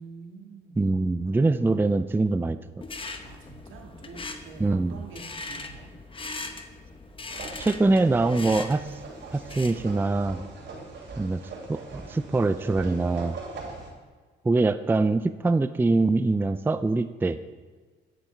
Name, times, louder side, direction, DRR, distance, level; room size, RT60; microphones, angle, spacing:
voice 1, 0.0-0.9 1.3-1.6 3.2-5.9 10.6-10.9 13.5-13.9, right 4 dB, 80° right, 1 dB, 1.9 m, -47 dB
voice 2, 0.8-2.6 4.6-5.0 7.6-8.9 9.3-10.4 11.2-11.4 11.7-13.4 14.4-17.4, right 3 dB, 10° right, 11 dB, 0.4 m, -23 dB
sound 1, 2.8-9.9, left 3 dB, 25° left, 0.8 m, -40 dB
sound 2, 7.3-13.9, right 3 dB, 65° right, 2.9 m, -41 dB
9.6 x 9.2 x 4.4 m, 1.5 s
cardioid pair, 90°, 20 cm